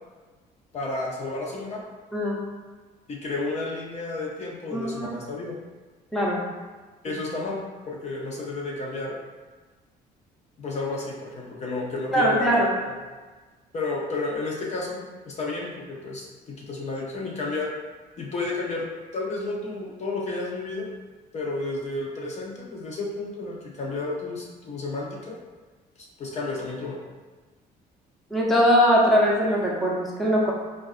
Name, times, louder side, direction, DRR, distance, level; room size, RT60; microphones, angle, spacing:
voice 1, 0.7-1.8 3.1-5.6 7.0-9.2 10.6-12.7 13.7-17.7 18.2-18.9 19.1-20.9 21.3-25.4 26.2-27.0, left 3 dB, 40° left, -2 dB, 0.6 m, -31 dB
voice 2, 4.7-5.1 6.1-6.4 12.1-12.7 28.3-30.5, equal, ahead, -5 dB, 0.6 m, -21 dB
3.6 x 2.3 x 2.4 m, 1.3 s
cardioid pair, 110°, 17 cm